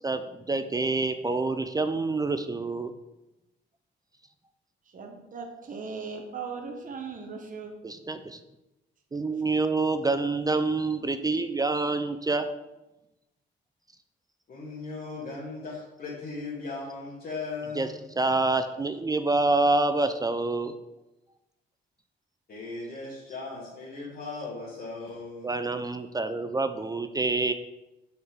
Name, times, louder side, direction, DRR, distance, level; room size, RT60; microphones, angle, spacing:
voice 1, 0.0-2.9 7.8-8.4 9.1-12.5 17.8-17.9 18.2-20.8 25.4-27.5, right 3 dB, 20° right, 9 dB, 0.3 m, -27 dB
voice 2, 4.9-7.7, right 5 dB, 45° right, 3 dB, 1.0 m, -38 dB
voice 3, 14.5-17.9 22.5-25.6, left 3 dB, 50° left, -7 dB, 1.5 m, -38 dB
5.8 x 5.3 x 3.5 m, 0.99 s
cardioid pair, 90°, 20 cm